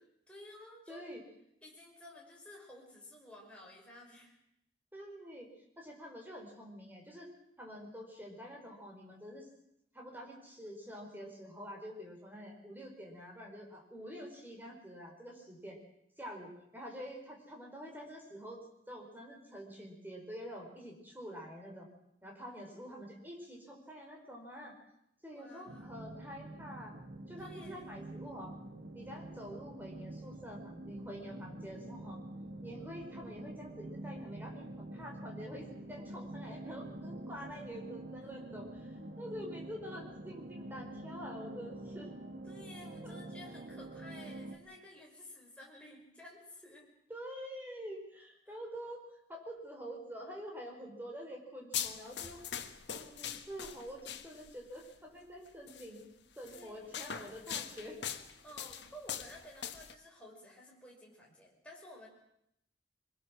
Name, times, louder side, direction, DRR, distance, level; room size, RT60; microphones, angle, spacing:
voice 1, 0.3-1.1 1.6-4.4 22.8-22.9 25.3-26.1 27.4-28.0 42.5-46.9 48.5-48.6 56.5-56.9 58.4-62.1, left 1 dB, 5° left, -2 dB, 5.8 m, -53 dB
voice 2, 0.9-1.2 4.9-7.3 7.6-9.5 9.9-15.8 16.2-21.9 22.2-24.7 25.2-27.0 27.3-28.5 28.9-32.2 32.6-42.1 43.0-43.2 47.1-52.4 52.9-56.1 56.4-58.0, equal, 10° right, 0 dB, 5.0 m, -47 dB
sound 1, 25.7-44.6, right 1 dB, 85° right, 2.4 m, -46 dB
sound 2, 51.7-54.6 55.7-55.9 56.4-59.9, left 9 dB, 75° left, 1.4 m, -41 dB
24.0 x 21.5 x 6.4 m, 0.78 s
head